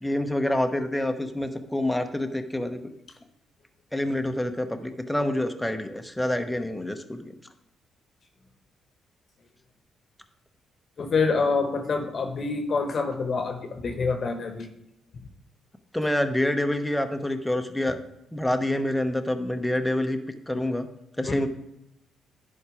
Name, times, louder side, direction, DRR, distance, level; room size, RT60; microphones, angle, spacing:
voice 1, 0.0-2.9 3.9-7.3 15.9-18.0 18.3-20.2 20.5-20.9 21.2-21.5, left 1 dB, 5° left, 6 dB, 1.0 m, -27 dB
voice 2, 11.0-14.7 21.2-21.4, left 4 dB, 45° left, 5 dB, 1.1 m, -26 dB
10.5 x 4.8 x 4.9 m, 0.83 s
cardioid pair, 90°, 0 cm